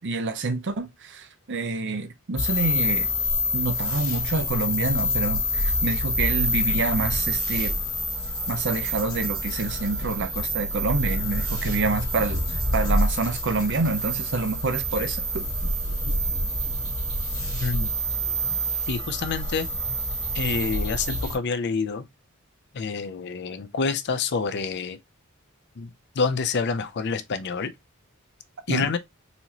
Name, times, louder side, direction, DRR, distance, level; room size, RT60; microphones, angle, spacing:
voice 1, 0.0-3.1 3.5-7.7 8.5-15.5 28.7-28.9, right 3 dB, 60° right, 0.7 m, -27 dB
sound 1, 2.4-21.4, equal, 25° left, 1.7 m, -27 dB
sound 2, 7.3-14.6, left 2 dB, 75° right, 1.2 m, -43 dB
voice 2, 17.6-17.9 18.9-19.7 20.3-22.0 22.7-25.0 25.8-25.9 26.2-27.7 28.7-29.0, left 5 dB, 55° left, 0.5 m, -27 dB
4.2 x 2.9 x 2.8 m
head